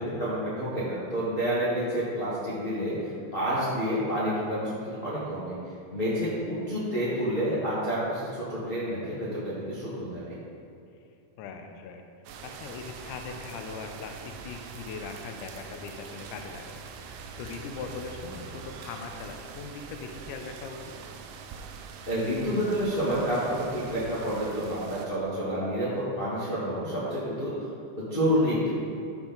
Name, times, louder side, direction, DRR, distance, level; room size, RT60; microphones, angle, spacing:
voice 1, 0.0-3.0 3.3-5.5 5.9-10.4 22.1-27.5 28.0-28.7, equal, 50° left, -9 dB, 0.6 m, -29 dB
voice 2, 11.4-12.0 12.4-16.7 17.4-20.9, left 5 dB, 80° left, 4 dB, 2.1 m, -40 dB
sound 1, 12.3-25.1, right 5 dB, 90° right, 2.3 m, -44 dB
13.0 x 4.4 x 3.9 m, 2.6 s
omnidirectional pair, 3.9 m